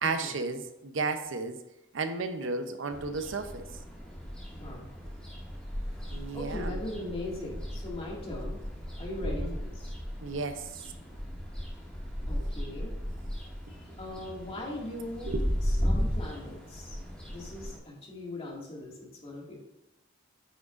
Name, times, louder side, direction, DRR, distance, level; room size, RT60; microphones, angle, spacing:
voice 1, 0.0-1.6 1.9-3.7 6.1-6.7 9.2-9.6 10.2-10.8 15.2-15.9, right 3 dB, 85° right, 0.7 m, -33 dB
sound 1, 2.9-17.8, equal, 5° left, 2.0 m, -35 dB
voice 2, 4.5-4.9 6.0-8.6 9.0-9.9 12.2-13.0 13.7-15.3 15.6-17.0 17.3-19.6, left 1 dB, 30° left, 2.1 m, -40 dB
8.9 x 6.1 x 2.5 m
head